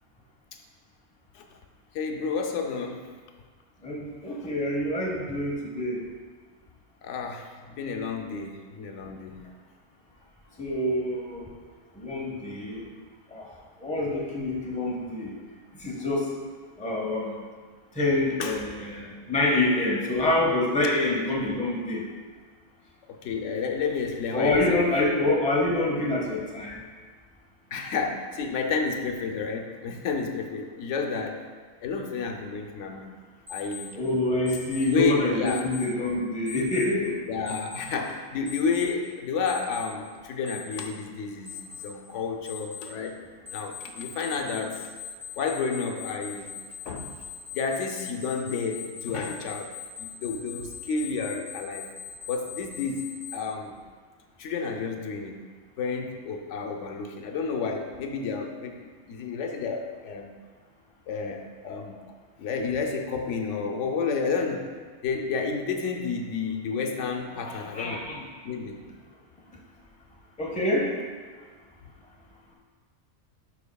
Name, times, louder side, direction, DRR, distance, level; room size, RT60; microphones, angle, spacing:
voice 1, 1.9-3.1 4.4-4.5 7.0-9.4 13.9-14.0 18.4-18.6 23.1-25.1 27.7-31.5 31.8-33.1 33.5-34.0 34.8-35.7 37.3-43.2 43.5-44.9 45.4-46.5 46.9-47.1 47.5-51.9 52.3-53.8 54.4-55.5 55.8-60.3 61.1-62.0 62.4-64.7 65.0-68.1 68.4-68.8, left 5 dB, 85° left, 3 dB, 1.0 m, -31 dB
voice 2, 3.8-6.0 10.6-11.5 11.9-12.8 13.3-13.5 13.8-15.3 15.7-16.3 16.8-17.4 17.9-22.0 24.3-26.8 33.9-37.5 67.3-68.2 70.4-70.9, left 2 dB, 5° left, -2 dB, 0.7 m, -26 dB
Alarm, 33.5-33.8 34.5-34.8 35.5-35.8 36.5-36.8 37.5-37.8 38.5-38.8 39.5-39.8 40.5-40.8 41.5-41.8 42.5-42.8 43.5-53.3, left 9 dB, 50° right, 2.1 m, -40 dB
11.0 x 4.3 x 2.2 m, 1.5 s
omnidirectional pair, 1.2 m